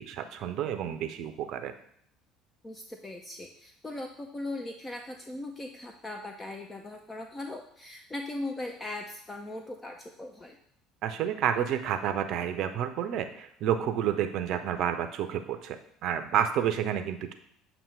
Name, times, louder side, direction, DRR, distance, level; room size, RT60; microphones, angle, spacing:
voice 1, 0.0-1.7 11.0-17.3, right 9 dB, 50° right, 8 dB, 0.6 m, -30 dB
voice 2, 2.6-10.6, left 2 dB, 20° left, 3 dB, 0.6 m, -39 dB
7.1 x 2.9 x 5.4 m, 0.67 s
figure-of-eight pair, 60°, 0 cm